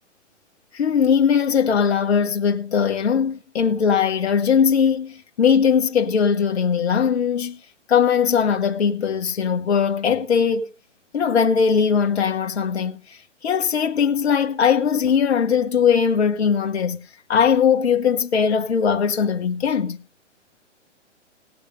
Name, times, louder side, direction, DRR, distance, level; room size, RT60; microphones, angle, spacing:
voice 1, 0.7-7.6 7.9-10.7 11.1-17.0 17.3-20.0, left 7 dB, 60° left, 1.1 m, -20 dB
17.5 x 8.1 x 5.2 m
figure-of-eight pair, 125°, 36 cm